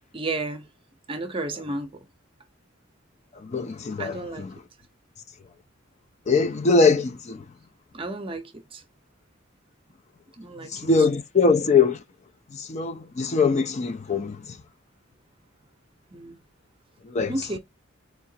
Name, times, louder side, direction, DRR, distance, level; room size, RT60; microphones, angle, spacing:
voice 1, 0.1-0.7 1.1-1.9 4.0-4.5 7.9-8.8 10.4-10.7 16.1-16.4 17.3-17.6, right 2 dB, 25° right, 0.7 m, -32 dB
voice 2, 3.4-4.6 6.3-7.4 10.7-12.0 12.5-14.6 17.0-17.6, left 4 dB, 35° left, 0.4 m, -22 dB
4.6 x 2.4 x 2.7 m
head